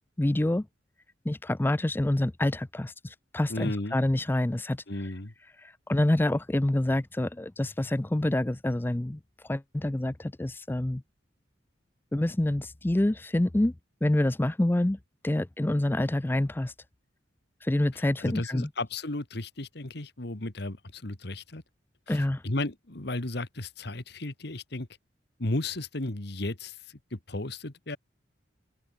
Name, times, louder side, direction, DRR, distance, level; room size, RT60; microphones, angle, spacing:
voice 1, 0.2-0.7 1.3-4.8 5.6-11.0 12.1-13.7 14.0-15.0 15.2-16.7 17.6-18.7 22.1-22.4, left 1 dB, 10° left, 0.4 m, -27 dB
voice 2, 3.5-4.0 4.9-5.3 17.9-21.6 22.1-24.9 25.4-28.0, left 2 dB, 60° left, 1.8 m, -34 dB
head